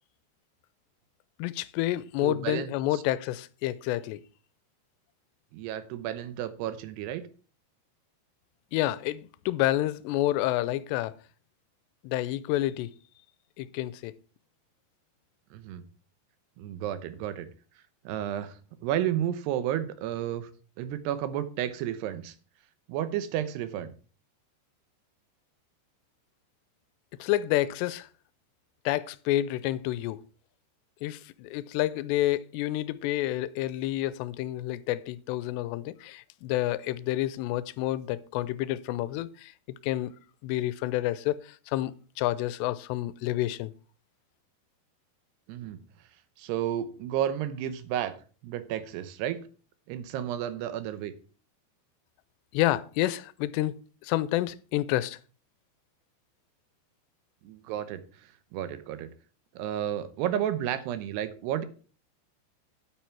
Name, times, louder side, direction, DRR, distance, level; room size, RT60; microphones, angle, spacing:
voice 1, 1.4-4.2 8.7-11.1 12.0-12.9 13.6-14.1 27.2-28.1 28.9-30.2 31.0-39.5 39.8-40.1 40.4-43.7 52.5-55.2, left 15 dB, 85° left, 2.7 m, -29 dB
voice 2, 2.2-3.0 5.5-7.2 15.5-15.8 16.6-17.5 18.0-20.5 20.8-22.3 22.9-23.9 45.5-45.8 46.4-48.2 48.4-49.4 49.9-51.1 57.4-58.0 58.5-59.1 59.6-61.7, right 11 dB, 75° right, 2.9 m, -32 dB
9.4 x 8.5 x 4.6 m
omnidirectional pair, 5.0 m